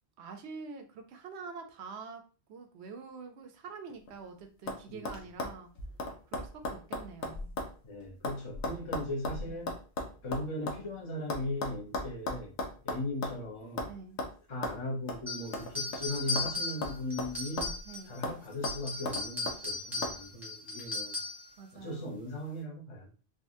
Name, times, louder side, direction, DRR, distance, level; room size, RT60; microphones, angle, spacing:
voice 1, 0.2-2.2 2.5-5.7 6.3-7.5 9.4-9.6 13.9-14.2 17.9-18.1 21.6-22.1, right 5 dB, 75° right, 5 dB, 0.9 m, -46 dB
sound 1, 3.9-4.3 4.7-4.8 5.0-7.8 8.0-10.8 11.3-13.4 13.8-13.9 14.2-14.3 14.6-14.8 15.1-15.2 15.5-16.5 16.8-17.9 18.2-18.4 18.6-19.6 20.0-20.2, left 2 dB, 85° left, 1.0 m, -36 dB
voice 2, 4.9-5.2 7.8-9.7 10.2-12.5 12.8-13.9 14.5-17.8 18.0-21.2 21.7-23.1, left 1 dB, 30° left, -2 dB, 0.7 m, -38 dB
sound 2, 15.3-18.2 18.5-21.5, left 2 dB, ahead, 0.9 m, -37 dB
3.6 x 2.4 x 2.6 m, 0.37 s
omnidirectional pair, 1.1 m